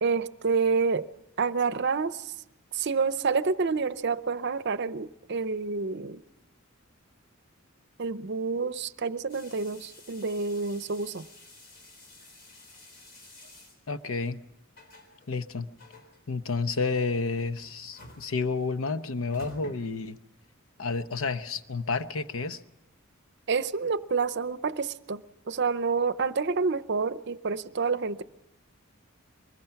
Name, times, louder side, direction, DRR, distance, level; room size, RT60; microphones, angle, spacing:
voice 1, 0.0-1.1 1.4-2.3 2.7-6.2 8.0-11.3 23.5-28.2, right 4 dB, 55° right, 0.7 m, -28 dB
sound 1, 9.3-20.5, left 1 dB, 50° left, 3.9 m, -52 dB
voice 2, 13.9-14.4 15.3-15.7 16.3-20.2 20.8-22.6, left 4 dB, 80° left, 0.9 m, -30 dB
23.5 x 21.0 x 5.9 m
head